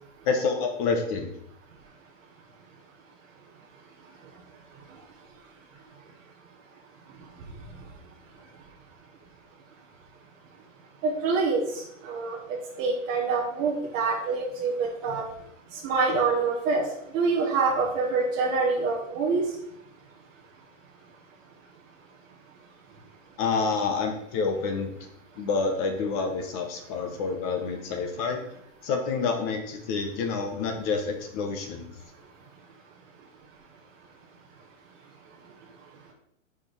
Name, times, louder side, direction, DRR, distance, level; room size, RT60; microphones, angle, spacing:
voice 1, 0.2-1.3 23.4-24.9 25.4-28.4 28.8-31.9, left 4 dB, 30° left, 5 dB, 0.9 m, -28 dB
voice 2, 11.0-15.2 15.8-16.8 17.1-19.4, right 4 dB, 25° right, -3 dB, 1.1 m, -26 dB
5.0 x 4.8 x 5.7 m, 0.72 s
hypercardioid pair, 155°, 40 cm